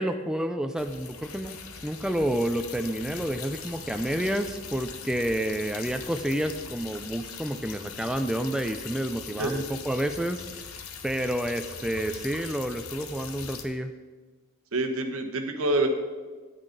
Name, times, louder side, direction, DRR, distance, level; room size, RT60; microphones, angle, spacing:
voice 1, 0.0-13.9, right 1 dB, 5° right, 7 dB, 0.3 m, -29 dB
sound 1, 0.8-13.6, left 6 dB, 80° left, 0.9 m, -41 dB
voice 2, 14.7-15.9, right 2 dB, 75° right, 5 dB, 1.1 m, -26 dB
10.0 x 8.9 x 3.9 m, 1.4 s
head